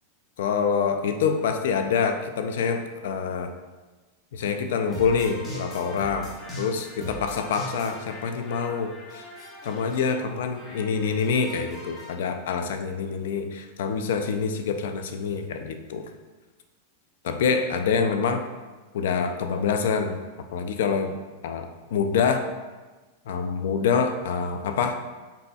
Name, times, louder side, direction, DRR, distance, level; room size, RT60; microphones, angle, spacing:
voice 1, 0.4-3.5 4.3-9.3 9.6-16.1 17.2-18.4 18.9-20.2 20.5-21.2 21.4-22.5 23.3-24.9, left 6 dB, 75° left, 7 dB, 0.4 m, -26 dB
sound 1, 4.9-12.1, left 1 dB, 20° left, 1.3 m, -40 dB
5.1 x 4.1 x 2.3 m, 1.3 s
hypercardioid pair, 125°, 0 cm